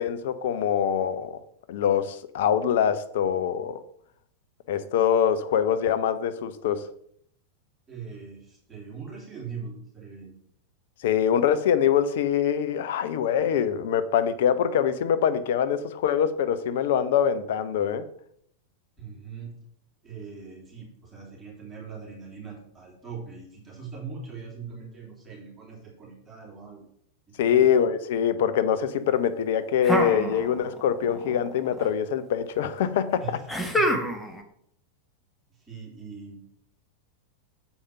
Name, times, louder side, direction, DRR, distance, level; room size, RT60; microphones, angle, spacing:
voice 1, 0.0-1.4 1.7-3.8 4.7-6.9 11.0-18.0 27.4-33.4, left 8 dB, 55° left, 11 dB, 0.6 m, -24 dB
voice 2, 7.9-10.3 19.0-19.5 20.0-26.9 27.3-27.8 33.2-33.5 33.7-34.2 35.6-36.4, right 5 dB, 10° right, -5 dB, 3.3 m, -41 dB
sound 1, 29.8-30.8 31.1-31.9 33.5-34.4, equal, 5° left, 1.1 m, -27 dB
7.1 x 4.9 x 5.5 m, 0.68 s
figure-of-eight pair, 90°, 0 cm